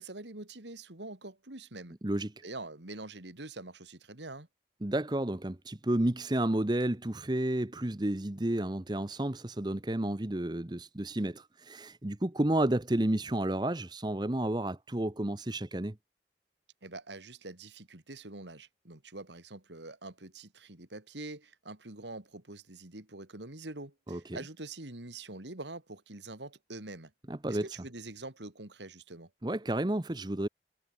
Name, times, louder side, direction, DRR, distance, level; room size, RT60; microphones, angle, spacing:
voice 1, 0.0-1.9 2.4-4.5 16.8-27.1 27.5-29.3, right 2 dB, 85° right, 2.9 m, -45 dB
voice 2, 4.8-16.0 24.1-24.4 27.3-27.7 29.4-30.5, right 1 dB, 25° right, 0.9 m, -31 dB
head